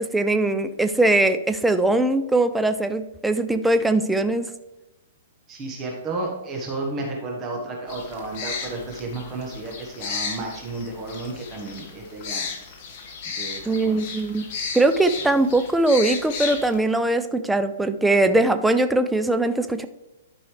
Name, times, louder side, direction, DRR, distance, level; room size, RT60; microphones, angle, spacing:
voice 1, 0.0-4.4 13.7-14.5 14.7-19.9, right 2 dB, 5° right, 9 dB, 0.4 m, -21 dB
voice 2, 5.5-12.4 13.4-14.0, right 2 dB, 20° right, 0 dB, 1.3 m, -32 dB
sound 1, 7.9-16.8, left 5 dB, 40° left, 1.6 m, -34 dB
12.0 x 5.4 x 3.3 m, 1.0 s
hypercardioid pair, 155°, 0 cm